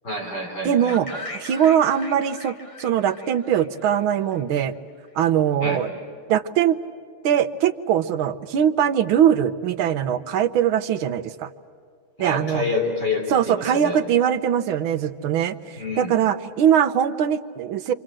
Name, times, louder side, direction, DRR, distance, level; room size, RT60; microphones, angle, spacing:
voice 1, 0.0-1.2 5.6-5.8 12.2-14.0 15.8-16.1, left 2 dB, 55° left, 0 dB, 4.4 m, -28 dB
voice 2, 0.6-2.5 2.8-4.7 5.1-5.9 6.3-6.8 7.2-11.5 12.2-12.6 13.3-17.9, right 9 dB, 85° right, 11 dB, 1.7 m, -21 dB
sound 1, 0.9-4.8, left 2 dB, 15° left, 1.6 m, -39 dB
28.0 x 26.5 x 7.6 m, 2.2 s
omnidirectional pair, 2.2 m